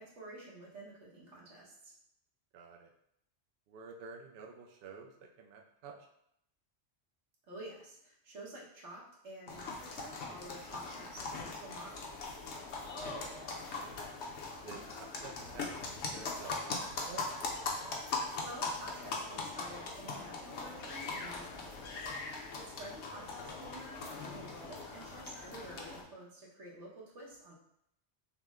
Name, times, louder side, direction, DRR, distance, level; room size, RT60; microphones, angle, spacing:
voice 1, 0.0-1.9 7.5-12.1 18.0-27.5, right 1 dB, 80° right, -4 dB, 1.5 m, -50 dB
voice 2, 2.5-2.9 3.7-6.0 12.9-14.0 14.6-17.3 23.1-23.3, right 5 dB, 60° right, 2 dB, 0.7 m, -51 dB
sound 1, 9.5-26.0, left 3 dB, 70° left, 1.0 m, -41 dB
5.8 x 2.1 x 3.5 m, 0.75 s
omnidirectional pair, 1.2 m